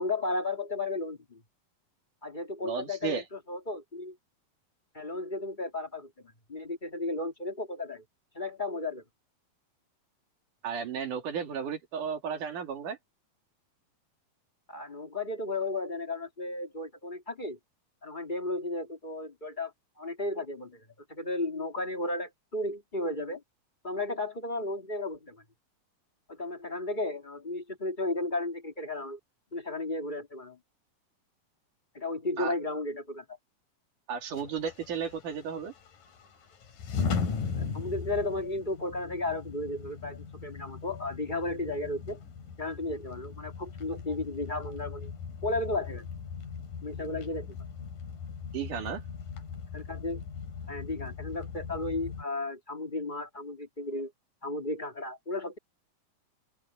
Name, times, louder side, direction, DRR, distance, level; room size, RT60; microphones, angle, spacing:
voice 1, 0.0-1.4 2.2-4.1 4.9-8.0 8.3-9.0 14.7-17.6 18.0-19.7 20.0-20.8 21.1-23.4 23.8-25.4 26.3-29.2 29.5-30.6 31.9-33.2 37.6-42.2 42.6-45.1 45.4-46.0 46.8-47.6 49.7-50.2 50.7-54.1 54.4-55.6, left 2 dB, 20° left, 1.6 m, -34 dB
voice 2, 2.6-3.2 10.6-13.0 32.4-32.5 34.1-35.7 48.5-49.0, right 7 dB, 65° right, 3.9 m, -34 dB
sound 1, 34.3-52.2, left 6 dB, 65° left, 4.4 m, -39 dB
open air
omnidirectional pair, 4.1 m